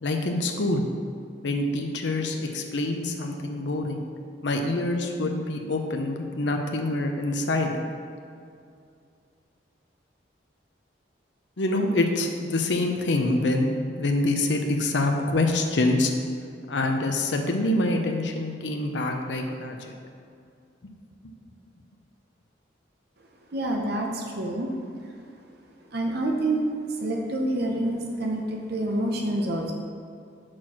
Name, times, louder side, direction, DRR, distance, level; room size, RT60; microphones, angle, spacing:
voice 1, 0.0-0.9 1.4-4.0 4.4-7.8 11.6-16.1 16.7-19.9, left 2 dB, 70° left, 3 dB, 0.7 m, -26 dB
voice 2, 23.5-24.7 25.9-26.6 27.0-29.7, right 1 dB, 60° right, 0 dB, 0.8 m, -27 dB
6.1 x 4.5 x 6.2 m, 2.4 s
head